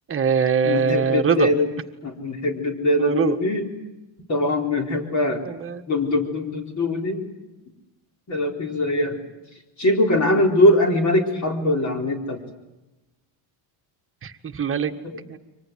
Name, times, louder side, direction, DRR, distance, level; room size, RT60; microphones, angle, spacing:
voice 1, 0.1-1.5 3.0-3.4 5.4-5.8 14.2-14.9 15.3-15.4, right 6 dB, 25° right, 6 dB, 1.7 m, -22 dB
voice 2, 0.6-1.7 2.0-3.7 4.3-5.4 5.9-7.3 8.3-9.2 9.8-12.4 15.0-15.2, left 1 dB, 35° left, 2 dB, 4.1 m, -22 dB
29.0 x 25.0 x 7.7 m, 1.0 s
cardioid pair, 155°, 49 cm